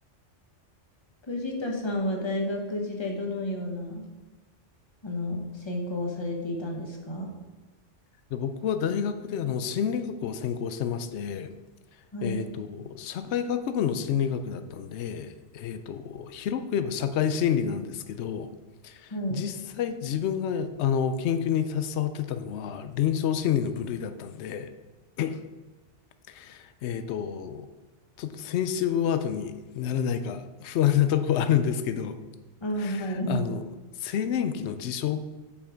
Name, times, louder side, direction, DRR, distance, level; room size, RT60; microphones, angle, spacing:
voice 1, 1.3-4.1 5.0-7.3 12.1-12.4 19.1-19.4 32.6-33.4, left 1 dB, 25° left, 0 dB, 1.2 m, -31 dB
voice 2, 8.3-11.5 12.2-18.5 18.8-24.7 25.2-25.4 26.3-27.7 28.2-32.2 32.8-33.6 34.0-35.2, left 8 dB, 70° left, 10 dB, 0.9 m, -28 dB
6.8 x 5.5 x 5.0 m, 1.2 s
omnidirectional pair, 1.2 m